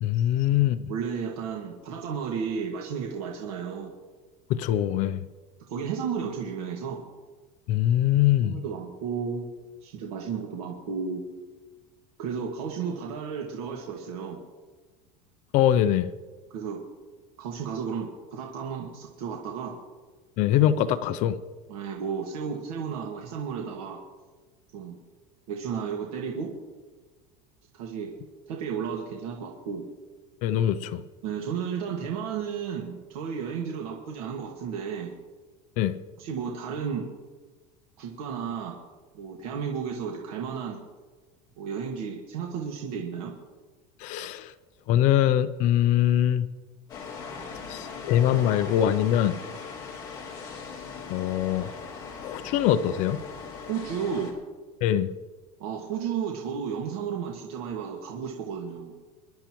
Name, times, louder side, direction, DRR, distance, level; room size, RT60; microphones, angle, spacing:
voice 1, 0.0-0.9 4.5-5.2 7.7-8.6 15.5-16.1 20.4-21.4 30.4-31.0 35.8-36.0 44.0-44.5 44.9-46.5 47.7-49.4 51.1-51.7 52.2-53.2 54.8-55.1, left 11 dB, 40° left, 13 dB, 0.5 m, -23 dB
voice 2, 0.9-3.9 5.7-7.0 8.4-9.5 9.8-11.2 12.2-14.4 16.5-16.8 17.4-19.8 21.7-24.0 24.7-25.0 25.5-26.5 27.7-28.1 28.5-29.8 31.2-35.2 36.2-37.1 38.0-38.8 39.1-40.8 41.6-43.3 53.7-54.3 55.6-58.9, right 6 dB, 80° right, 0 dB, 1.9 m, -33 dB
sound 1, 46.9-54.3, left 5 dB, 20° left, 3.0 m, -39 dB
25.5 x 11.5 x 3.0 m, 1.3 s
cardioid pair, 175°, 19 cm